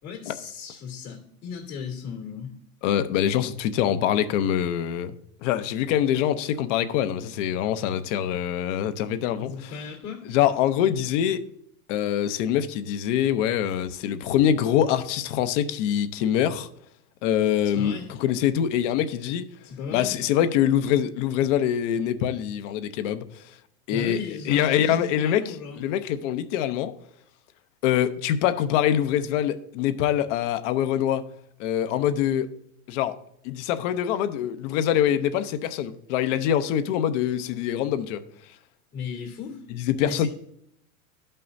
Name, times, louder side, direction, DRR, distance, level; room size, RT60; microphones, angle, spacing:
voice 1, 0.0-2.5 9.4-10.2 17.7-18.1 19.6-20.1 23.9-25.8 38.9-39.6 40.0-40.3, left 6 dB, 75° left, 2.3 m, -36 dB
voice 2, 2.8-5.2 5.4-9.7 10.3-11.4 11.9-16.7 17.2-19.4 19.9-23.4 23.9-24.2 24.5-25.4 25.8-26.9 27.8-31.2 31.6-32.5 32.9-33.2 33.4-38.2 39.7-40.3, left 10 dB, 55° left, 0.8 m, -24 dB
12.5 x 5.5 x 2.7 m
hypercardioid pair, 115°, 43 cm